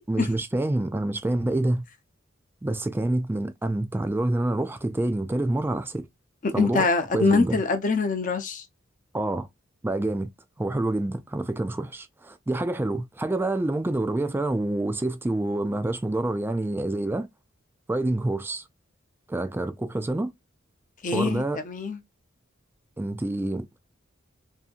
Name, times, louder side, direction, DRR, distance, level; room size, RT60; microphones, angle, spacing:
voice 1, 0.1-1.8 2.6-6.1 6.5-7.6 9.1-9.5 9.8-10.3 10.6-17.3 17.9-18.6 19.3-20.3 21.1-21.6 23.0-23.8, right 2 dB, 10° right, 0.3 m, -27 dB
voice 2, 6.6-8.6 21.0-22.0, left 4 dB, 40° left, 0.6 m, -24 dB
2.7 x 2.6 x 2.3 m
head